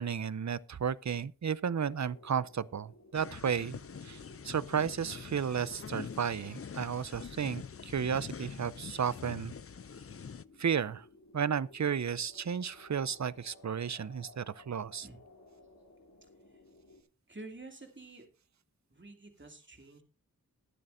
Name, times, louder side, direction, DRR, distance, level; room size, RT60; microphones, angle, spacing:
voice 1, 0.0-3.8 4.0-4.2 4.4-9.5 10.6-11.0 11.3-15.1, right 7 dB, 55° right, 0.6 m, -33 dB
sound 1, 1.7-17.0, left 2 dB, 60° left, 2.7 m, -59 dB
sound 2, 3.1-10.4, left 6 dB, 40° left, 0.5 m, -45 dB
voice 2, 16.2-16.6 17.3-18.2 18.9-20.0, right 2 dB, 35° right, 2.5 m, -50 dB
21.5 x 7.7 x 2.6 m
wide cardioid pair, 50°, 34 cm